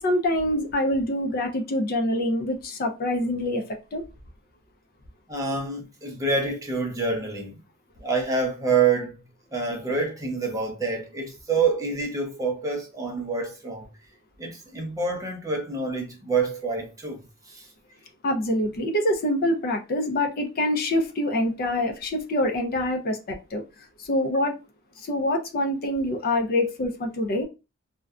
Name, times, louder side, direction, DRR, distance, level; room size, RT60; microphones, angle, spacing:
voice 1, 0.0-3.7 3.9-4.0 18.2-23.6 24.0-24.5 25.0-27.4, left 1 dB, 45° left, 0.4 m, -25 dB
voice 2, 5.3-7.6 8.0-9.1 9.5-13.9 14.4-17.2 17.5-17.7, right 4 dB, 15° right, 0.5 m, -27 dB
2.6 x 2.1 x 2.3 m
head